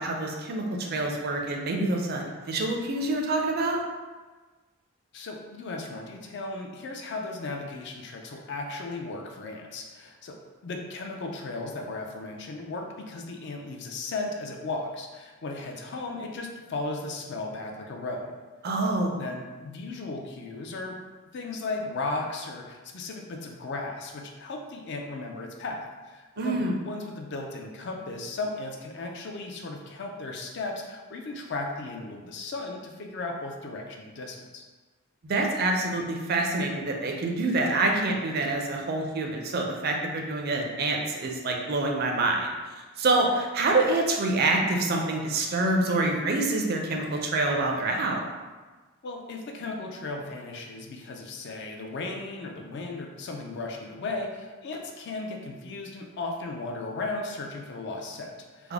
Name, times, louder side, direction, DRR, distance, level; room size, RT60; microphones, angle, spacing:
voice 1, 0.0-3.8 18.6-19.2 26.4-26.7 35.2-48.2 58.6-58.7, right 2 dB, 45° right, 1 dB, 0.4 m, -26 dB
voice 2, 5.1-18.3 19.2-21.0 21.3-26.6 26.9-34.6 49.0-58.7, left 3 dB, 55° left, 2 dB, 0.4 m, -36 dB
3.4 x 2.0 x 3.4 m, 1.3 s
head